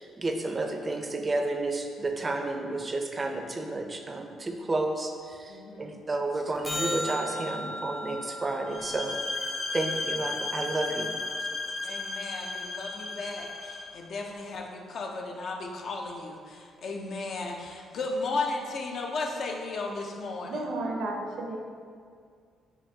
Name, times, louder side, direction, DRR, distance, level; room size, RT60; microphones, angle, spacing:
voice 1, 0.0-9.2 9.7-11.1, right 2 dB, 25° right, 4 dB, 0.4 m, -31 dB
voice 2, 5.5-6.0 11.8-20.6, left 3 dB, 60° left, 1 dB, 0.5 m, -35 dB
sound 1, 6.6-11.1 17.7-17.8, left 1 dB, 15° left, 0.6 m, -37 dB
sound 2, 8.7-13.9, left 3 dB, 80° left, 1.0 m, -34 dB
voice 3, 20.4-21.6, right 2 dB, 80° right, 0 dB, 0.6 m, -32 dB
5.4 x 2.5 x 2.7 m, 2.1 s
cardioid pair, 90°, 0 cm